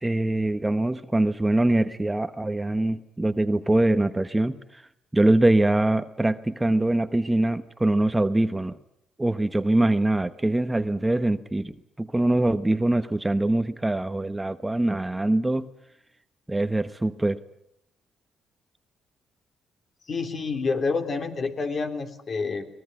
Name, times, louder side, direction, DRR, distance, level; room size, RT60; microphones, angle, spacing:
voice 1, 0.0-4.8 5.1-8.8 9.2-15.6 16.5-17.4, right 1 dB, 15° right, 11 dB, 1.0 m, -23 dB
voice 2, 20.1-22.7, left 4 dB, 45° left, 6 dB, 3.5 m, -28 dB
24.0 x 19.0 x 9.5 m, 0.77 s
cardioid pair, 90°, 0 cm